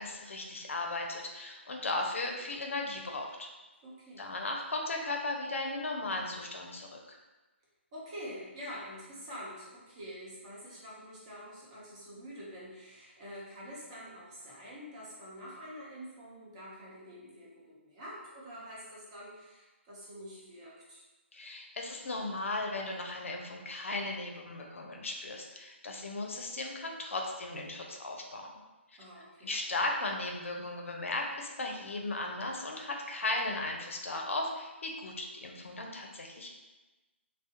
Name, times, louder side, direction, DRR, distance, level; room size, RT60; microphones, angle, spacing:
voice 1, 0.0-3.5 4.2-7.2 21.3-28.5 29.4-36.5, left 2 dB, 80° left, 1 dB, 0.5 m, -36 dB
voice 2, 3.8-4.3 7.9-21.0 29.0-29.5, equal, 30° right, -6 dB, 0.7 m, -46 dB
2.3 x 2.0 x 2.8 m, 1.1 s
hypercardioid pair, 155°, 7 cm